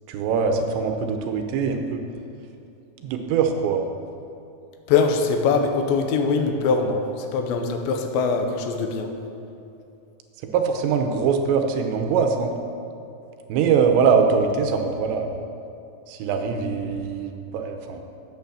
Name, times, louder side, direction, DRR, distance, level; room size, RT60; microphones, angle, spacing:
voice 1, 0.1-2.1 3.0-3.8 10.4-12.5 13.5-15.4 16.1-18.0, right 6 dB, 90° right, 5 dB, 3.1 m, -22 dB
voice 2, 4.9-9.1, left 4 dB, 85° left, 5 dB, 3.2 m, -22 dB
9.3 x 8.6 x 7.0 m, 2.7 s
omnidirectional pair, 5.0 m